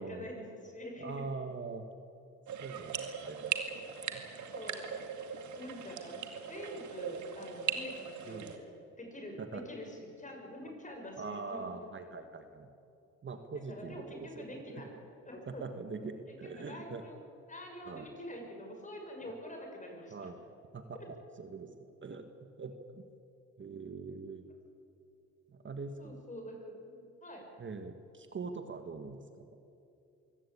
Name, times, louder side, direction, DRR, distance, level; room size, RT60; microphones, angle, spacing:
voice 1, 0.0-1.3 4.5-5.0 5.3-8.7 9.0-11.7 13.7-14.9 15.2-15.6 16.3-17.2 17.5-20.3 26.0-27.5, left 1 dB, 25° left, 2 dB, 6.5 m, -46 dB
voice 2, 1.0-1.8 2.6-3.5 4.1-4.2 8.3-8.5 9.4-9.6 11.2-12.7 13.2-15.0 15.5-17.0 17.9-18.1 20.1-20.4 20.7-21.7 22.0-22.3 22.6-23.1 23.6-24.4 25.5-26.1 27.6-29.5, right 4 dB, 40° right, 7 dB, 1.6 m, -43 dB
sound 1, 2.5-8.6, right 7 dB, 70° right, 2.2 m, -39 dB
24.0 x 17.0 x 8.7 m, 2.7 s
cardioid pair, 90°, 30 cm